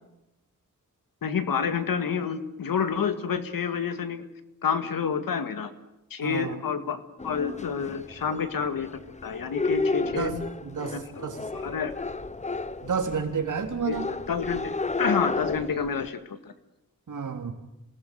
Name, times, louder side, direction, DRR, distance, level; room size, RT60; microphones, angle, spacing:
voice 1, 1.2-4.3 4.6-5.7 6.1-10.3 10.9-11.9 13.9-16.5, left 6 dB, 85° left, 10 dB, 2.1 m, -29 dB
voice 2, 6.2-6.6 10.2-11.4 12.8-14.0 17.1-17.5, right 5 dB, 65° right, 4 dB, 3.6 m, -30 dB
sound 1, 7.2-16.1, left 3 dB, 20° left, 0.8 m, -32 dB
27.5 x 18.5 x 9.4 m, 0.91 s
wide cardioid pair, 125°, 33 cm